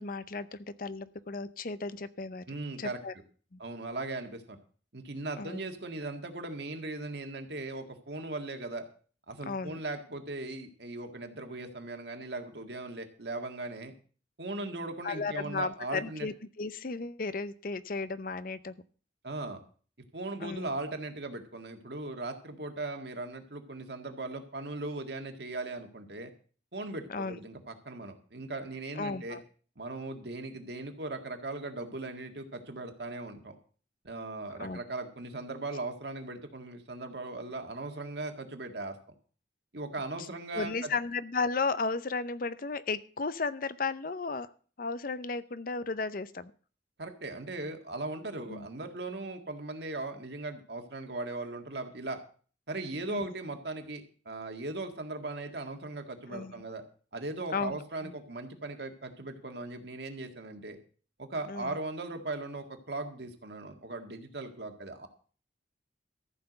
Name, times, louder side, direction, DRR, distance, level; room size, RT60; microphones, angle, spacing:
voice 1, 0.0-2.4 2.8-3.1 3.5-3.6 5.4-5.6 9.4-9.8 15.0-18.7 20.4-20.7 27.1-27.4 29.0-29.4 34.6-34.8 40.5-44.5 44.8-46.5 48.5-48.7 53.1-53.3 56.3-56.6 57.5-57.8 58.0-58.1 61.5-61.8, left 4 dB, 50° left, 15 dB, 0.6 m, -34 dB
voice 2, 2.5-3.0 3.6-4.6 4.9-8.9 9.3-13.9 14.4-16.3 19.2-19.6 20.1-26.3 26.7-29.4 29.8-33.6 34.0-39.0 39.7-40.9 47.0-52.2 52.7-56.8 57.1-60.8 61.2-65.1, right 2 dB, 60° right, 5 dB, 1.8 m, -38 dB
14.0 x 5.9 x 7.9 m, 0.42 s
head